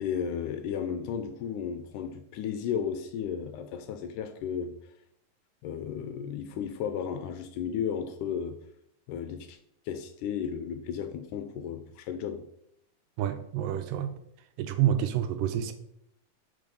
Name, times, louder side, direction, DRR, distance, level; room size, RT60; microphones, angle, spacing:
voice 1, 0.0-4.7 5.6-8.6 9.1-9.6 9.9-12.4, left 7 dB, 80° left, 1.9 m, -34 dB
voice 2, 13.2-14.1 14.6-15.7, right 10 dB, 85° right, 2.2 m, -28 dB
6.6 x 5.2 x 5.3 m
omnidirectional pair, 4.0 m